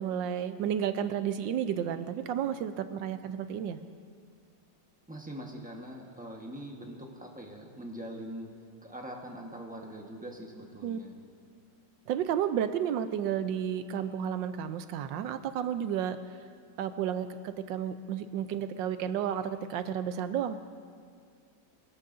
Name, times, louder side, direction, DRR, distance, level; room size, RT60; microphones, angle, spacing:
voice 1, 0.0-3.8 10.8-11.0 12.1-16.2 16.8-20.6, right 9 dB, 85° right, 10 dB, 1.3 m, -32 dB
voice 2, 5.1-8.5 8.8-11.2, right 1 dB, 5° right, 0 dB, 1.0 m, -43 dB
23.0 x 13.0 x 2.6 m, 2.1 s
omnidirectional pair, 2.0 m